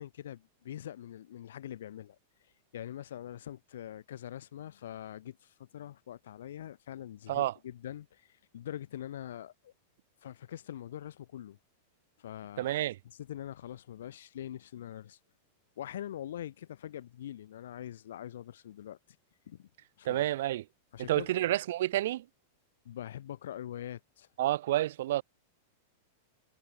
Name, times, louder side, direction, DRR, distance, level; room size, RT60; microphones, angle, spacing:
voice 1, 0.0-2.2 2.7-9.7 10.2-11.6 12.2-15.2 15.8-19.0 19.5-19.7 20.0-20.3 20.9-21.5 22.8-24.3, left 11 dB, 75° left, 6.2 m, -43 dB
voice 2, 12.6-12.9 20.0-20.6 21.1-22.2 24.4-25.2, right 14 dB, 70° right, 1.1 m, -29 dB
hypercardioid pair, 110°, 0 cm